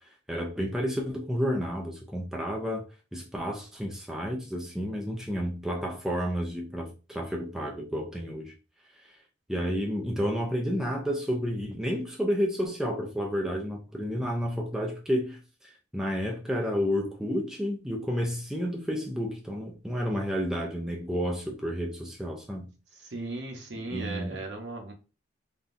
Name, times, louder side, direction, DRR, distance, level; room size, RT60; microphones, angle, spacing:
voice 1, 0.3-2.8 3.1-8.5 9.5-22.7 23.9-24.4, equal, 5° right, 0.4 m, -31 dB
voice 2, 22.9-24.9, right 2 dB, 65° right, 0.8 m, -37 dB
3.5 x 2.2 x 2.5 m
head